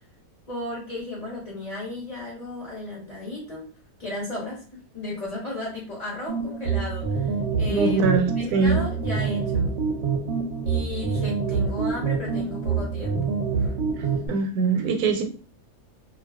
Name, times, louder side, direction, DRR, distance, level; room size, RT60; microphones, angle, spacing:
voice 1, 0.5-3.7 4.0-4.6 4.9-8.1 8.4-9.7 10.6-13.7, left 2 dB, 40° left, -5 dB, 0.6 m, -34 dB
sound 1, 6.3-14.3, right 5 dB, 65° right, 0.7 m, -26 dB
voice 2, 7.7-8.8 14.3-15.2, right 4 dB, 90° right, 5 dB, 1.1 m, -22 dB
2.4 x 2.3 x 2.2 m, 0.38 s
omnidirectional pair, 1.5 m